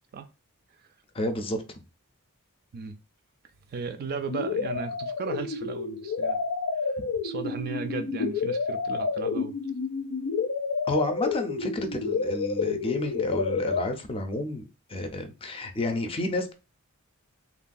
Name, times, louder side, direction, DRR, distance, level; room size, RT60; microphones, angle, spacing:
voice 1, 1.1-1.6 10.8-16.5, left 1 dB, 25° left, 0.4 m, -30 dB
voice 2, 3.7-6.4 7.2-9.5, right 5 dB, 45° right, 0.3 m, -35 dB
sound 1, 4.3-13.8, left 4 dB, 80° left, 0.5 m, -29 dB
3.0 x 2.2 x 2.5 m
head